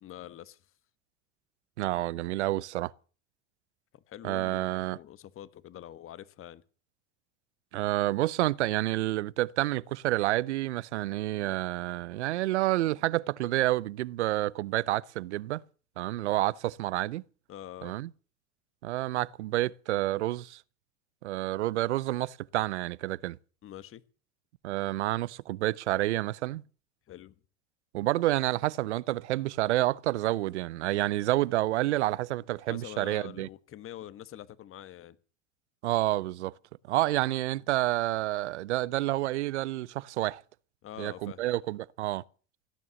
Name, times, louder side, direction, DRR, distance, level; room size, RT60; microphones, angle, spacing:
voice 1, 0.0-0.6 3.9-6.6 17.5-18.0 23.6-24.0 27.1-27.4 32.7-35.2 40.8-41.4, left 12 dB, 40° left, 1.2 m, -45 dB
voice 2, 1.8-2.9 4.2-5.0 7.7-15.6 16.0-17.2 17.8-18.1 18.8-20.6 21.2-23.4 24.6-26.6 27.9-33.5 35.8-36.5 36.9-40.4 41.0-42.2, right 16 dB, 90° right, 0.6 m, -29 dB
17.0 x 9.8 x 7.0 m
hypercardioid pair, 90°, 33 cm